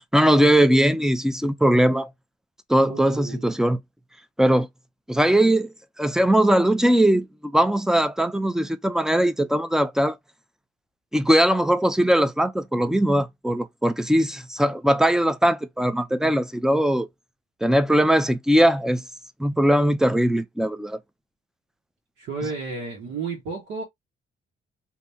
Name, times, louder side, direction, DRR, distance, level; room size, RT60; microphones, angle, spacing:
voice 1, 0.1-2.1 2.7-3.8 4.4-4.7 5.1-10.2 11.1-17.1 17.6-19.0 19.4-21.0, right 1 dB, 5° right, 0.5 m, -20 dB
voice 2, 2.8-3.5 22.2-23.8, right 4 dB, 85° right, 1.4 m, -32 dB
2.7 x 2.7 x 3.4 m
cardioid pair, 90°, 20 cm